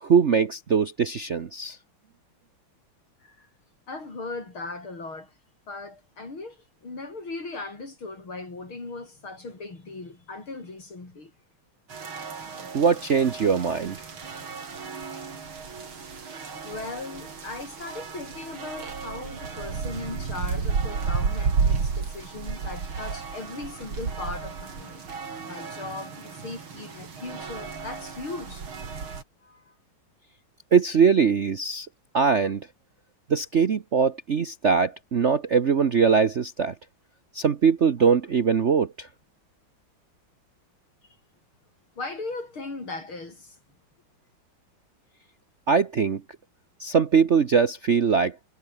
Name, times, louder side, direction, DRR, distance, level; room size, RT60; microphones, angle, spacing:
voice 1, 0.0-1.8 12.7-14.0 30.7-31.9 32.1-32.7 33.3-36.7 37.3-39.1 45.7-46.2 46.8-48.4, right 6 dB, 45° right, 1.0 m, -21 dB
voice 2, 3.9-5.3 5.7-11.3 16.2-16.3 16.6-25.0 25.5-28.7 29.4-29.7 41.0-41.2 42.0-43.6, left 3 dB, 80° left, 6.7 m, -38 dB
sound 1, 11.9-29.2, right 5 dB, 85° right, 3.9 m, -33 dB
omnidirectional pair, 2.2 m